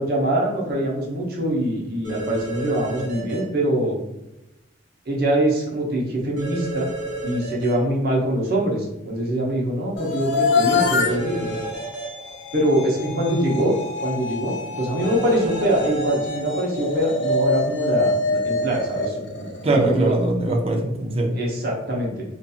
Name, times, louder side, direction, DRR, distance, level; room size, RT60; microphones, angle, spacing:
voice 1, 0.0-4.0 5.1-6.9 7.2-11.6 12.5-13.7 14.0-20.2 21.3-22.2, right 1 dB, 55° right, -2 dB, 0.7 m, -23 dB
sound 1, 2.0-3.4 6.4-7.7 10.7-12.0 15.0-16.4, right 2 dB, 80° right, 0.9 m, -31 dB
sound 2, 10.0-20.1, left 3 dB, 65° left, 0.4 m, -26 dB
voice 2, 13.1-13.5 19.6-21.4, right 2 dB, 30° right, 2 dB, 0.4 m, -22 dB
2.7 x 2.6 x 2.3 m, 0.94 s
head